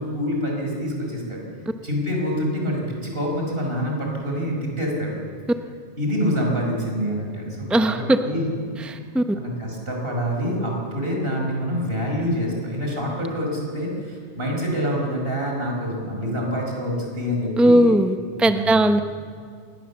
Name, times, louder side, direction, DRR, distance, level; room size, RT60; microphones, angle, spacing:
voice 1, 0.0-1.4 1.8-5.2 6.0-9.1 9.3-18.0 18.4-18.9, equal, 60° right, -1 dB, 5.7 m, -26 dB
voice 2, 7.7-8.2 8.8-9.2 17.6-19.0, right 1 dB, ahead, 8 dB, 0.7 m, -18 dB
25.5 x 20.0 x 7.2 m, 2.1 s
omnidirectional pair, 1.1 m